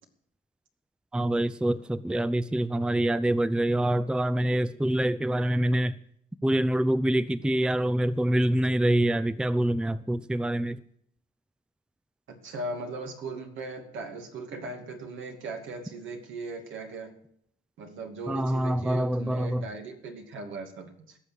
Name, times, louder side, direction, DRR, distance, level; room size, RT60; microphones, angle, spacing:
voice 1, 1.1-6.0 6.4-10.8 18.3-19.7, right 1 dB, 5° right, 0.5 m, -25 dB
voice 2, 12.3-17.1 17.8-21.2, right 3 dB, 75° right, 2.6 m, -38 dB
17.0 x 6.6 x 8.6 m
cardioid pair, 90°, 20 cm